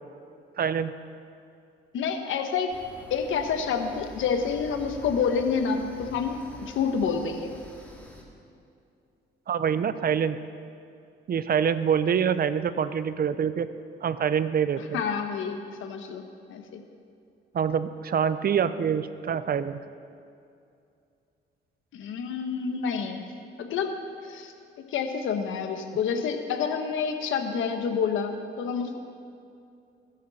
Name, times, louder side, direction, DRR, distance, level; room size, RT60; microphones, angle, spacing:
voice 1, 0.6-1.0 9.5-10.4 11.3-13.7 14.0-15.0 17.5-19.8, right 7 dB, 50° right, 13 dB, 0.7 m, -25 dB
voice 2, 1.9-2.7 3.1-7.5 14.8-16.2 16.5-16.8 21.9-23.2 23.6-24.0 24.2-29.0, left 6 dB, 80° left, 6 dB, 1.4 m, -28 dB
sound 1, 2.7-8.2, left 1 dB, 10° left, 2.6 m, -46 dB
21.0 x 10.5 x 4.3 m, 2.5 s
cardioid pair, 90°, 20 cm